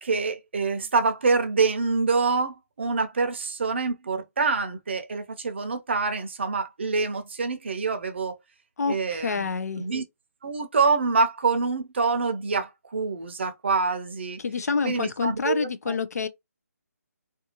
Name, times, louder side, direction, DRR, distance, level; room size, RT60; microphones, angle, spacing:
voice 1, 0.0-8.4 8.9-9.5 9.8-10.0 10.4-14.4 14.8-16.0, right 4 dB, 45° right, 0.5 m, -26 dB
voice 2, 8.8-9.9 14.4-16.3, left 5 dB, 70° left, 0.5 m, -27 dB
2.5 x 2.3 x 2.8 m
hypercardioid pair, 170°, 9 cm